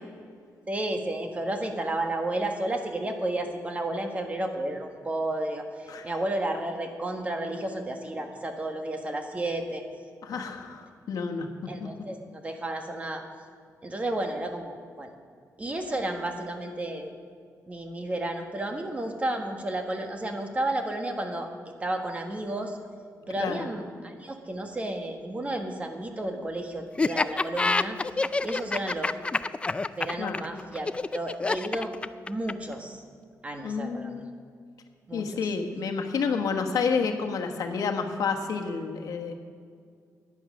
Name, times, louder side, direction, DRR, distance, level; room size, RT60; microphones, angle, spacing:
voice 1, 0.7-9.8 10.3-10.5 11.7-13.2 13.8-15.1 15.6-17.1 17.7-21.5 21.8-22.8 23.3-28.0 28.4-29.1 29.9-30.9 31.1-31.9 32.3-33.0 33.4-34.2 35.1-35.4, right 1 dB, 20° right, 4 dB, 1.3 m, -32 dB
voice 2, 10.2-11.5 11.8-11.9 23.4-23.7 30.2-30.4 33.6-34.3 35.1-39.3, left 5 dB, 80° left, 4 dB, 1.3 m, -29 dB
Laughter, 27.0-32.7, left 3 dB, 20° left, 0.3 m, -27 dB
14.5 x 9.7 x 6.3 m, 2.2 s
wide cardioid pair, 140°, 6 cm